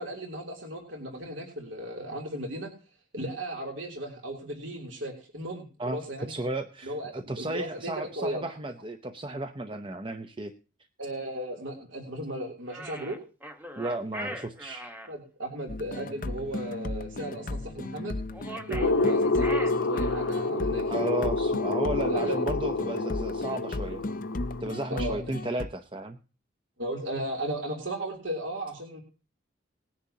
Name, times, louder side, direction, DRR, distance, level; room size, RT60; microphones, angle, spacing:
voice 1, 0.0-2.7 3.1-6.3 6.8-8.6 11.0-13.2 15.1-18.2 18.7-21.0 22.0-22.4 24.9-25.2 26.8-29.0, right 1 dB, 70° right, 1 dB, 3.1 m, -35 dB
voice 2, 6.3-10.5 13.8-14.8 20.9-24.0 24.6-26.2, right 1 dB, 25° right, 7 dB, 0.7 m, -34 dB
sound 1, 12.7-15.1 18.3-20.4, equal, 10° right, 1.2 m, -40 dB
sound 2, 15.7-25.7, left 2 dB, 40° left, 0.6 m, -35 dB
sound 3, 18.8-24.6, left 3 dB, 75° left, 1.0 m, -28 dB
19.5 x 10.5 x 2.8 m, 0.34 s
head